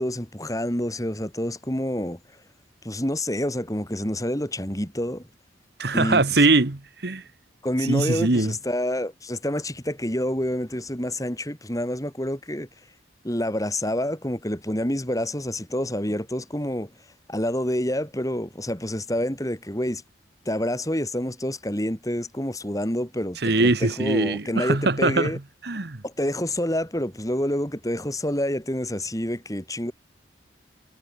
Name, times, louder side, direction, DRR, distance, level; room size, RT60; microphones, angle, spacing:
voice 1, 0.0-2.2 2.8-5.2 5.9-6.5 7.6-12.7 13.2-16.9 17.3-20.0 20.5-25.4 26.0-29.9, left 1 dB, 20° left, 4.1 m, -28 dB
voice 2, 5.8-7.2 7.8-8.5 23.4-25.3 25.6-26.0, right 2 dB, 60° right, 1.4 m, -22 dB
head